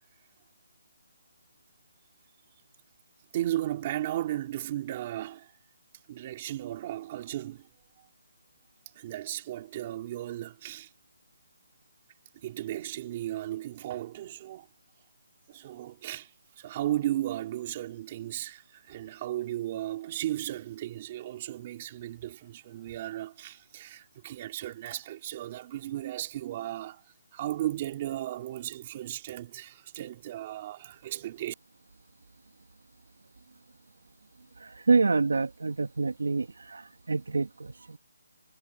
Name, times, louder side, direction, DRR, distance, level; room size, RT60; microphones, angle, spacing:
voice 1, 3.3-5.5 6.1-7.7 8.9-10.9 12.3-14.7 15.5-16.3 16.6-27.0 27.3-31.5, right 13 dB, 20° right, 3.8 m, -35 dB
voice 2, 34.6-38.0, right 4 dB, 75° right, 1.5 m, -27 dB
hypercardioid pair, 180°, 0 cm